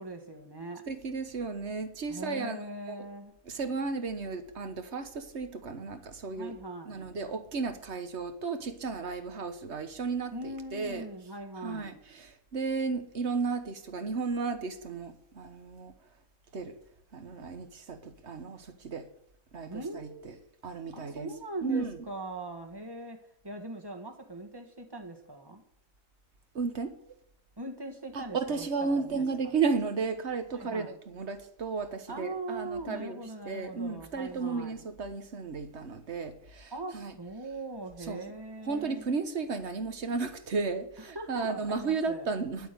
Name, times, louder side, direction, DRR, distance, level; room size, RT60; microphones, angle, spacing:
voice 1, 0.0-0.8 2.1-3.3 6.3-7.0 10.3-12.0 19.7-20.3 20.8-25.6 27.6-29.5 30.5-30.9 32.1-34.8 36.7-39.0 41.1-42.3, right 2 dB, 15° right, 3 dB, 1.7 m, -41 dB
voice 2, 0.9-2.6 2.9-3.0 3.4-6.6 6.8-11.1 11.6-15.9 16.5-16.7 17.1-19.1 19.5-20.3 20.6-21.3 21.6-22.0 26.5-26.9 28.1-37.1 38.1-38.2 38.6-42.7, right 4 dB, 55° right, 9 dB, 1.5 m, -34 dB
11.0 x 8.2 x 6.8 m, 0.70 s
omnidirectional pair, 1.4 m